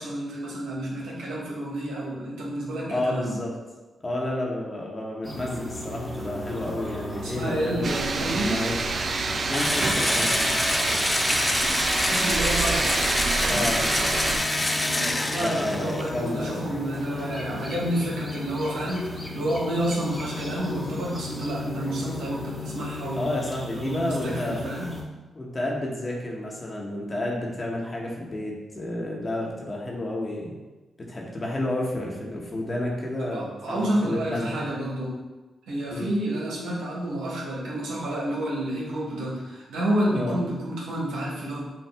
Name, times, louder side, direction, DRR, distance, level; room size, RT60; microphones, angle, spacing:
voice 1, 0.0-3.4 7.2-8.6 11.3-13.6 14.9-23.3 23.7-24.9 33.2-35.2 35.7-41.6, right 1 dB, 80° right, -4 dB, 1.2 m, -30 dB
voice 2, 2.9-3.5 4.0-7.9 8.4-8.9 9.5-10.6 13.5-14.1 15.4-16.7 23.1-24.6 25.3-30.5 31.0-34.7 35.9-36.1 40.1-40.4, left 1 dB, 35° left, -2 dB, 1.1 m, -30 dB
sound 1, 5.2-25.0, left 2 dB, ahead, 1.3 m, -36 dB
sound 2, 7.8-14.4, right 4 dB, 55° right, 0.4 m, -27 dB
Engine / Drill, 9.5-16.1, left 1 dB, 20° left, 0.5 m, -26 dB
5.8 x 2.5 x 3.5 m, 1.2 s
supercardioid pair, 45°, 0 cm